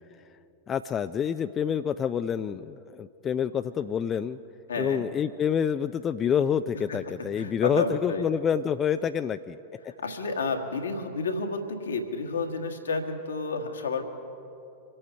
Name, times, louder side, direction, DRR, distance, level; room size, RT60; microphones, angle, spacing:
voice 1, 0.7-4.4 4.8-9.6, left 8 dB, 25° left, 11 dB, 0.4 m, -27 dB
voice 2, 4.7-5.1 6.9-7.0 7.3-8.2 9.9-14.0, left 3 dB, 70° left, 4 dB, 1.6 m, -31 dB
26.0 x 8.8 x 5.6 m, 2.8 s
figure-of-eight pair, 90°, 0 cm